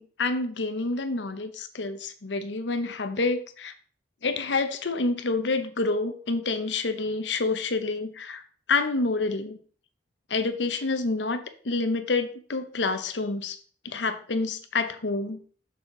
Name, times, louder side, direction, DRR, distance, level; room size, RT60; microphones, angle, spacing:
voice 1, 0.0-3.7 4.2-8.4 8.7-9.6 10.3-13.6 13.8-15.4, left 3 dB, 90° left, 9 dB, 0.9 m, -28 dB
6.7 x 6.5 x 3.9 m, 0.44 s
head